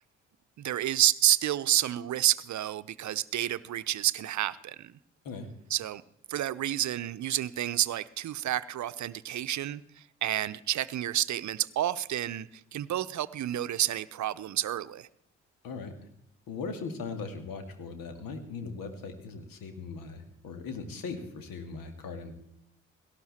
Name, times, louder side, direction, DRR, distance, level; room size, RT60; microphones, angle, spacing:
voice 1, 0.6-4.9 5.7-6.0 6.3-9.8 10.2-15.1, right 12 dB, 50° right, 16 dB, 0.8 m, -29 dB
voice 2, 16.5-22.3, left 4 dB, 65° left, 7 dB, 2.4 m, -39 dB
18.0 x 13.0 x 4.3 m, 0.79 s
hypercardioid pair, 45°, 36 cm